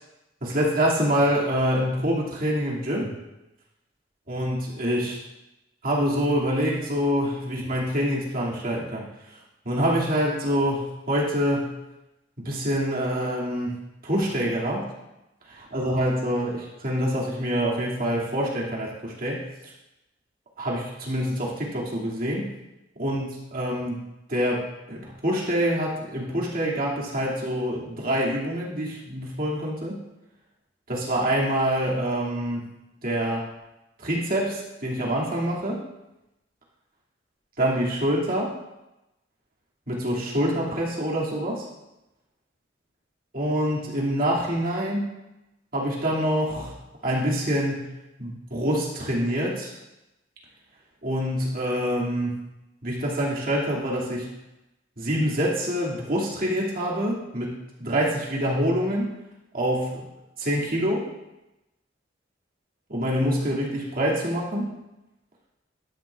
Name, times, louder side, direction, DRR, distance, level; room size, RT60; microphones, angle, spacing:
voice 1, 0.4-3.1 4.3-5.2 5.8-9.1 9.7-11.8 12.4-13.8 14.0-14.9 15.7-19.4 20.6-22.5 23.0-24.0 24.3-30.0 30.9-32.7 33.0-33.5 34.0-35.9 37.6-38.6 39.9-41.7 43.3-45.2 45.7-46.7 47.0-47.9 48.2-49.8 51.0-52.4 52.8-54.3 55.0-59.2 59.5-60.0 60.4-61.1 62.9-64.8, equal, 50° right, -4 dB, 2.4 m, -26 dB
12.0 x 10.5 x 2.4 m, 0.95 s
head